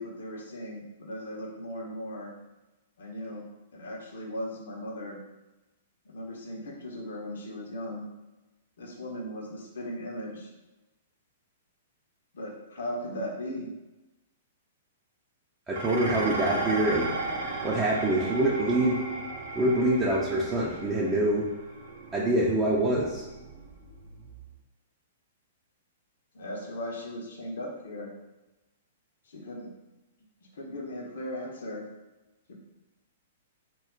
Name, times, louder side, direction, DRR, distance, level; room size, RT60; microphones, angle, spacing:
voice 1, 0.0-2.3 3.0-3.5 3.7-5.2 6.0-8.1 8.8-10.5 12.3-13.7 26.3-28.1 29.3-29.7 30.5-31.8 32.5-32.6, left 1 dB, 70° left, -1 dB, 0.6 m, -37 dB
voice 2, 15.7-17.1 17.6-19.0 19.6-21.5 22.1-23.2, right 1 dB, 20° right, -5 dB, 0.5 m, -25 dB
Dishes pots and pans, 15.7-24.5, right 3 dB, 65° right, 0.6 m, -36 dB
2.2 x 2.1 x 3.7 m, 1.1 s
hypercardioid pair, 115°, 0 cm